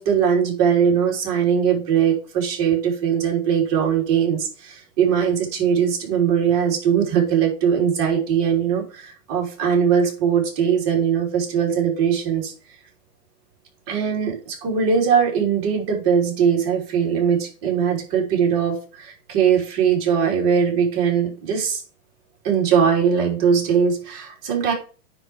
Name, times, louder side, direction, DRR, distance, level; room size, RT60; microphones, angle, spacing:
voice 1, 0.0-12.5 13.9-21.8 22.4-24.7, right 7 dB, 40° right, -2 dB, 3.7 m, -20 dB
9.9 x 3.4 x 4.7 m, 0.37 s
hypercardioid pair, 120°, 46 cm